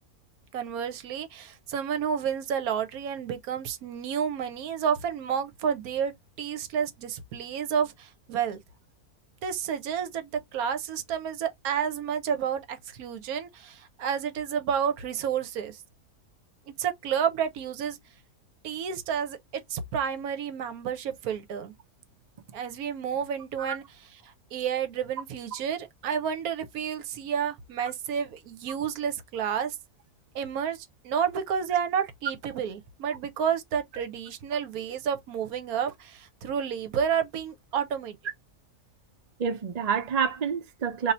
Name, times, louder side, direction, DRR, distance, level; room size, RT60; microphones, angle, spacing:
voice 1, 0.5-8.6 9.4-15.8 16.8-18.0 18.6-21.7 22.5-23.8 24.2-29.8 30.3-38.2, right 8 dB, 80° right, 1.1 m, -30 dB
voice 2, 39.4-41.1, right 6 dB, 55° right, 0.4 m, -28 dB
2.7 x 2.6 x 4.1 m
omnidirectional pair, 1.6 m